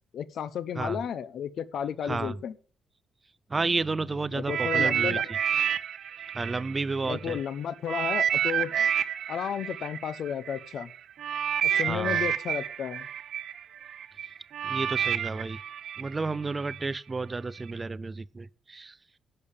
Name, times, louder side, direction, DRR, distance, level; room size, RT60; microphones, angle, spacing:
voice 1, 0.1-2.5 4.3-5.3 7.0-8.7 9.3-10.9 11.6-13.1, left 8 dB, 55° left, 0.9 m, -33 dB
voice 2, 2.0-2.4 3.5-5.4 6.3-7.4 11.7-12.2 14.2-14.3 14.6-15.6 16.0-19.0, right 3 dB, 20° right, 0.5 m, -31 dB
sound 1, 4.5-7.4 7.9-16.9 17.6-17.7, right 9 dB, 55° right, 0.7 m, -29 dB
11.0 x 6.8 x 8.6 m
cardioid pair, 165°, 0 cm